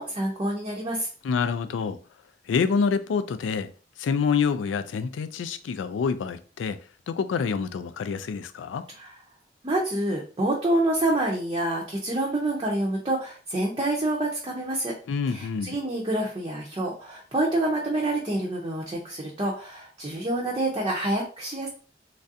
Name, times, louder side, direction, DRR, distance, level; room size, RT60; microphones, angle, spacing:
voice 1, 0.0-1.1 9.0-9.1 9.6-14.9 15.3-21.7, right 1 dB, 25° right, 0.5 m, -27 dB
voice 2, 1.2-2.0 2.5-3.7 4.0-6.8 7.1-8.9 15.1-15.8, left 5 dB, 85° left, 0.3 m, -27 dB
3.2 x 2.4 x 2.6 m
head